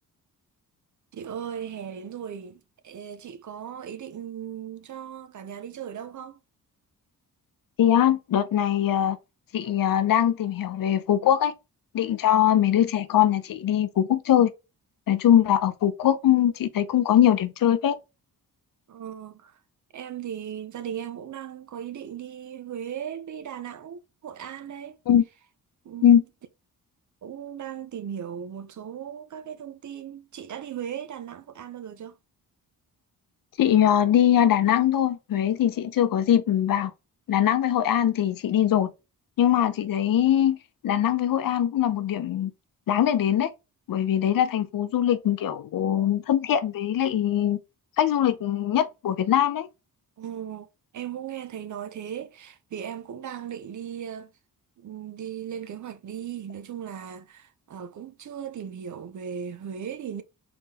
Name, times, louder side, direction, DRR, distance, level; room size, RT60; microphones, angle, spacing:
voice 1, 1.1-6.4 18.9-19.6 19.9-25.0 25.8-26.2 27.2-32.2 50.2-50.7 50.9-54.3 54.8-60.2, right 9 dB, 55° right, 0.6 m, -37 dB
voice 2, 7.8-9.2 9.5-11.5 11.9-14.5 15.1-18.0 25.1-25.2 26.0-26.2 33.6-36.9 37.3-38.9 39.4-40.6 40.8-42.5 42.9-43.5 43.9-47.6 48.0-49.7, left 10 dB, 65° left, 0.6 m, -22 dB
3.9 x 3.7 x 2.8 m
cardioid pair, 95°, 37 cm